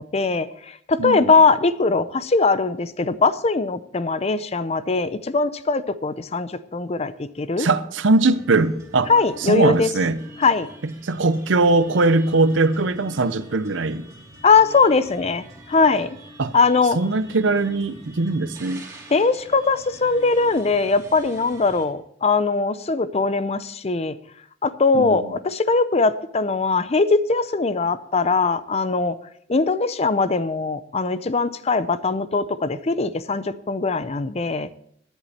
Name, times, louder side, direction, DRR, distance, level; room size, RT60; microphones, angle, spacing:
voice 1, 0.0-7.7 9.1-9.9 10.4-10.7 14.4-16.2 16.5-17.0 19.1-24.2 24.6-29.2 29.5-34.7, left 4 dB, 35° left, 0.5 m, -21 dB
voice 2, 1.0-1.3 7.6-9.1 9.4-10.2 10.8-14.1 16.4-16.5 16.9-18.8 24.9-25.4, right 3 dB, 75° right, 0.7 m, -21 dB
sound 1, 8.1-21.9, right 1 dB, 20° right, 2.9 m, -45 dB
11.5 x 10.5 x 4.2 m
head